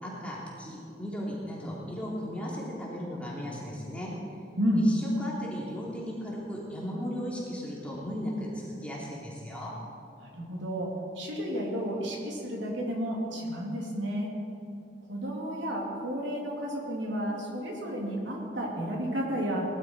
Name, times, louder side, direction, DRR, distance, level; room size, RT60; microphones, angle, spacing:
voice 1, 0.0-4.1 4.8-9.7, equal, 5° left, -5 dB, 3.1 m, -36 dB
voice 2, 10.2-10.9 11.2-14.3 15.1-19.6, equal, 90° right, -2 dB, 3.4 m, -32 dB
20.0 x 12.0 x 4.9 m, 2.7 s
head